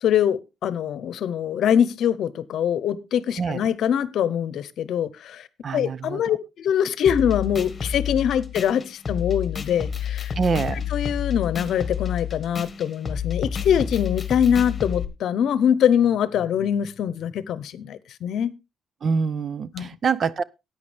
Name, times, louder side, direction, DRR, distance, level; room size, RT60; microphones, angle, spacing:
voice 1, 0.0-5.5 5.7-10.3 10.9-18.5 19.7-19.9, left 9 dB, 70° left, 0.8 m, -23 dB
voice 2, 5.6-6.4 10.4-10.8 19.0-20.4, right 5 dB, 50° right, 0.6 m, -25 dB
sound 1, 7.1-15.0, left 8 dB, 35° left, 1.6 m, -29 dB
13.5 x 9.3 x 3.4 m
cardioid pair, 90°, 0 cm